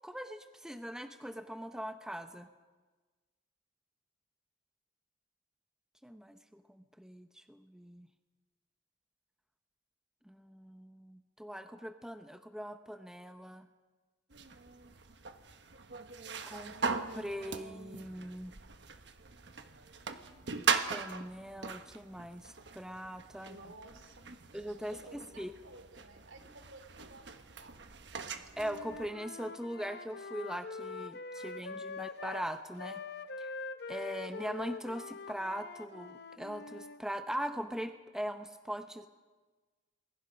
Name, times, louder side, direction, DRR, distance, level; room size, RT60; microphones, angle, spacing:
voice 1, 0.0-2.5 6.0-8.1 10.3-13.7 16.4-16.7 17.1-18.5 20.9-23.6 24.5-25.5 28.6-33.0 33.4-33.5 33.9-39.1, equal, 5° right, 8 dB, 0.8 m, -41 dB
sound 1, 14.3-29.1, right 5 dB, 60° right, 1.2 m, -40 dB
voice 2, 23.4-24.3 24.9-27.8 31.3-31.8, right 2 dB, 80° right, 7 dB, 3.1 m, -55 dB
Wind instrument woodwind instrument, 28.6-32.5 32.8-37.0, left 4 dB, 55° left, 0.7 m, -44 dB
28.5 x 22.0 x 5.3 m, 1.3 s
head